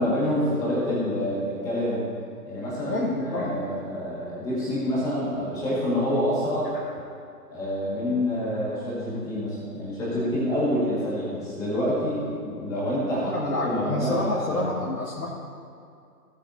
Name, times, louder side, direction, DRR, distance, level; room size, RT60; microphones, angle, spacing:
voice 1, 0.0-2.0 2.5-6.7 7.5-13.3 13.6-14.1 14.5-14.7, left 1 dB, 5° left, -9 dB, 1.6 m, -27 dB
voice 2, 2.9-3.6 13.2-15.3, left 2 dB, 80° left, -6 dB, 2.0 m, -28 dB
16.0 x 8.4 x 2.7 m, 2.5 s
figure-of-eight pair, 150°, 48 cm